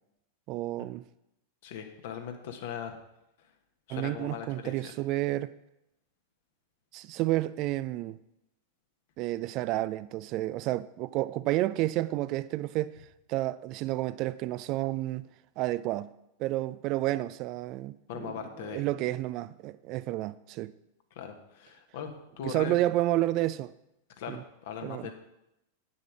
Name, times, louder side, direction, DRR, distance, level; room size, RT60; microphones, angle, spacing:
voice 1, 0.5-1.0 3.9-5.5 6.9-8.2 9.2-12.9 13.3-15.3 15.6-16.1 16.4-18.3 18.6-20.7 22.4-23.7 24.3-24.4 24.8-25.1, right 16 dB, 40° right, 0.3 m, -30 dB
voice 2, 1.6-3.0 3.4-3.5 3.9-4.9 18.1-18.8 21.1-22.8 24.2-25.1, left 8 dB, 55° left, 1.4 m, -40 dB
9.4 x 7.0 x 6.0 m
figure-of-eight pair, 90°, 0 cm